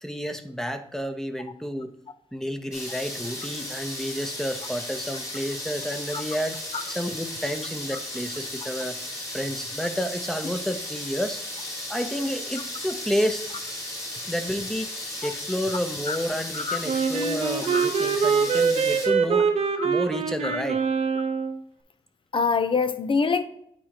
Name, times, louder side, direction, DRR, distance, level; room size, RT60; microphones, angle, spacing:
voice 1, 0.0-1.9 2.3-6.6 6.9-9.0 9.3-11.4 11.9-13.5 14.3-14.9 15.2-19.5 19.8-20.8, equal, 5° left, 8 dB, 0.8 m, -30 dB
sound 1, 2.7-19.1, left 1 dB, 30° left, 2.3 m, -35 dB
Wind instrument woodwind instrument, 16.9-21.6, right 6 dB, 80° right, 0.7 m, -24 dB
voice 2, 22.3-23.4, left 5 dB, 55° left, 11 dB, 0.7 m, -25 dB
9.0 x 4.3 x 2.9 m, 0.71 s
cardioid pair, 75°, 11 cm